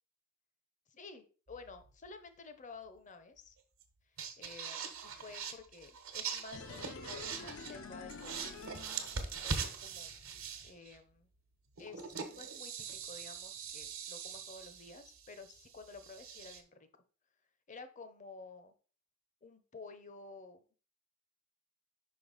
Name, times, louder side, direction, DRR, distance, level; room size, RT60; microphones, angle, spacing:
voice 1, 0.9-3.5 4.4-8.5 9.2-10.1 10.6-11.3 11.8-16.9 17.7-18.7 19.4-20.6, left 4 dB, 35° left, 9 dB, 0.8 m, -52 dB
sound 1, 1.5-2.1 3.8-3.9 4.2-7.8 8.1-11.0 11.8-16.6, right 6 dB, 75° right, 1.2 m, -42 dB
sound 2, 6.5-9.6 9.9-10.0, left 4 dB, 70° left, 0.8 m, -48 dB
5.4 x 5.3 x 4.0 m, 0.38 s
head